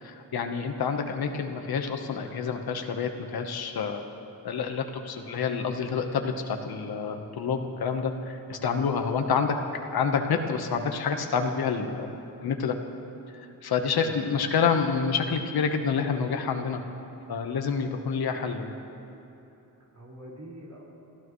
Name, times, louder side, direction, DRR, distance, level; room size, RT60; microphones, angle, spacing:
voice 1, 0.0-4.0 4.4-9.6 9.9-12.1 12.4-12.7 13.6-16.8 17.3-18.7, left 6 dB, 85° left, 5 dB, 1.3 m, -28 dB
voice 2, 13.9-14.5 19.7-20.8, right 1 dB, 50° right, -6 dB, 4.9 m, -45 dB
29.5 x 15.0 x 3.2 m, 2.8 s
wide cardioid pair, 110°, 36 cm